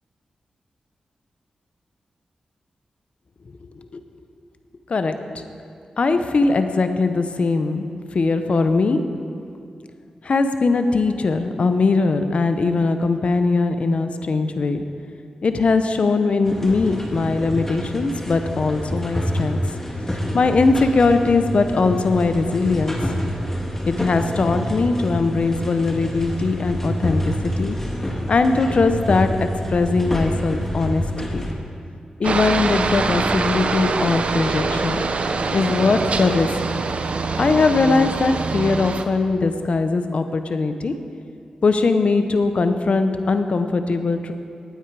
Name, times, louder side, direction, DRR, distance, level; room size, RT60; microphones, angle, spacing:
voice 1, 4.9-5.4 6.0-7.9 8.1-9.0 10.2-14.8 15.4-19.6 20.1-23.0 23.9-27.8 28.3-31.4 32.2-35.0 35.5-36.8 37.4-40.9 41.6-44.3, left 3 dB, 60° left, 8 dB, 0.8 m, -20 dB
sound 1, 16.4-31.5, equal, 15° left, 1.9 m, -27 dB
Aircraft, 32.2-39.0, right 4 dB, 60° right, 0.8 m, -24 dB
17.0 x 9.2 x 4.8 m, 2.4 s
cardioid pair, 70°, 2 cm